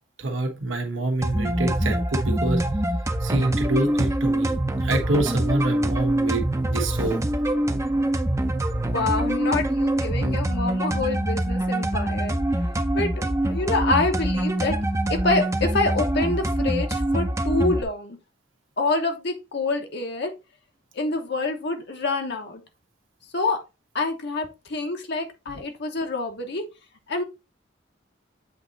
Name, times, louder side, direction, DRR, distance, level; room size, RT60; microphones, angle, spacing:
voice 1, 0.2-2.7 3.2-4.6 4.8-7.2, right 2 dB, 90° right, 1.3 m, -26 dB
sound 1, 1.2-17.8, right 1 dB, 15° right, 0.6 m, -24 dB
voice 2, 8.9-12.4 12.9-14.8 15.1-18.2 18.8-20.3 20.9-22.6 23.3-23.6 23.9-26.6 27.1-27.2, left 3 dB, 65° left, 1.1 m, -26 dB
7.9 x 3.0 x 3.9 m
head